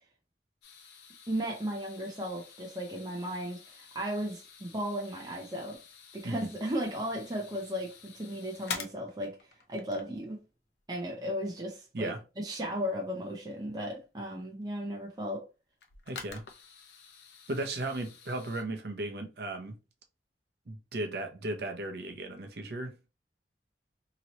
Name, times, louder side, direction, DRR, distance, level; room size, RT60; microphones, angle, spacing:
sound 1, 0.6-10.1 13.6-13.7 15.8-18.6, left 5 dB, 65° left, 0.6 m, -47 dB
voice 1, 1.3-5.8 6.1-9.3 9.7-10.4 10.9-12.1 12.4-15.4, equal, 20° right, 0.6 m, -35 dB
voice 2, 16.1-16.4 17.5-19.8 20.7-22.9, right 2 dB, 65° right, 0.7 m, -36 dB
2.9 x 2.8 x 2.9 m
head